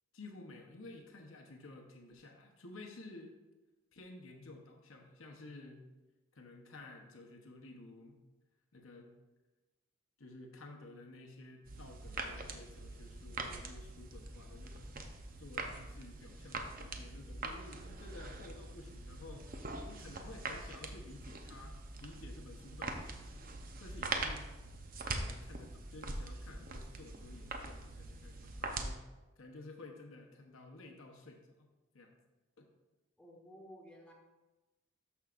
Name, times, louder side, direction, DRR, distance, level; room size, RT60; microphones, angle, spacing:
voice 1, 0.1-3.3 3.9-5.9 6.3-8.2 8.7-9.1 10.2-15.0 15.4-19.5 19.9-23.5 23.8-24.5 25.0-29.0 29.4-31.7 31.9-32.2 32.6-32.7, left 2 dB, 80° left, 2 dB, 1.0 m, -53 dB
sound 1, 11.6-28.9, right 3 dB, 45° right, 0.7 m, -43 dB
voice 2, 33.2-34.1, equal, 5° left, -2 dB, 1.2 m, -54 dB
13.0 x 5.5 x 2.5 m, 1.1 s
head